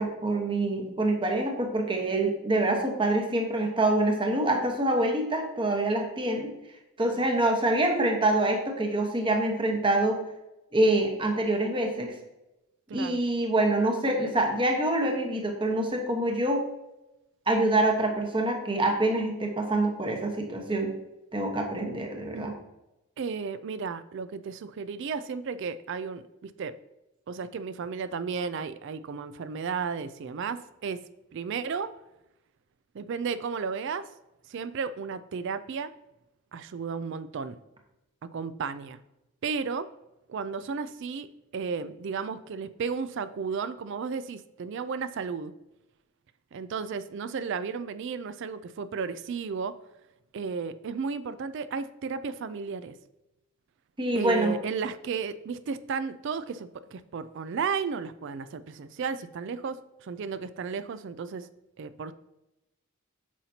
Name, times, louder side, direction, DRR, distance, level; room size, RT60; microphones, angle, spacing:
voice 1, 0.0-6.5 7.0-10.2 10.7-12.1 12.9-16.6 17.5-20.9 21.3-22.5 54.0-54.5, right 1 dB, 20° right, 2 dB, 1.0 m, -26 dB
voice 2, 23.2-26.7 27.3-31.0 31.3-31.9 32.9-34.1 34.5-35.9 36.5-37.6 38.2-39.0 39.4-39.9 40.3-41.3 41.5-45.5 46.5-49.8 50.3-52.9 54.1-61.5 61.8-62.1, right 5 dB, 55° right, 13 dB, 0.3 m, -33 dB
9.0 x 5.8 x 2.8 m, 0.94 s
head